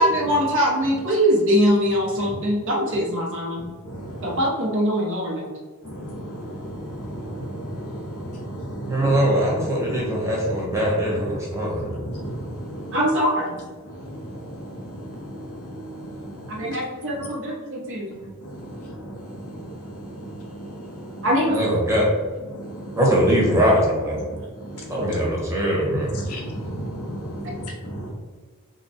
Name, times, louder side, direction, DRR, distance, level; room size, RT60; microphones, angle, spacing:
voice 1, 0.0-3.6 4.2-5.5 12.9-13.6 16.5-18.2 21.2-21.6, equal, 60° right, -2 dB, 1.0 m, -22 dB
voice 2, 3.5-4.5 5.8-10.4 10.7-10.9 11.1-13.2 13.5-16.8 17.1-17.5 17.8-21.4 22.2-23.3 24.1-28.1, equal, 85° left, -1 dB, 1.0 m, -35 dB
voice 3, 8.8-11.8 21.5-22.1 23.0-24.2 24.9-26.1, equal, 15° right, -4 dB, 1.1 m, -21 dB
3.9 x 2.2 x 4.1 m, 1.4 s
head